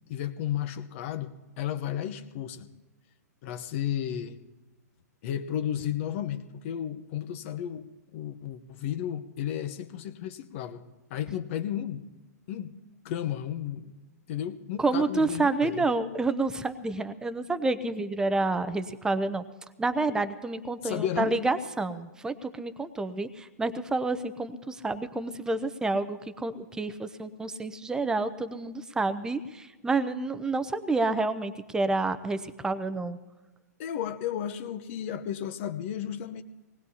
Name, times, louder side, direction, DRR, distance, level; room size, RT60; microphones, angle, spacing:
voice 1, 0.1-2.7 3.4-4.4 5.2-7.9 8.1-10.8 11.1-12.0 12.5-12.7 13.0-13.9 14.3-15.9 20.8-21.3 33.8-36.4, left 10 dB, 45° left, 10 dB, 0.9 m, -33 dB
voice 2, 14.8-19.4 19.8-33.2, right 3 dB, 5° right, 11 dB, 0.6 m, -29 dB
25.0 x 19.5 x 2.8 m, 1.1 s
hypercardioid pair, 130°, 9 cm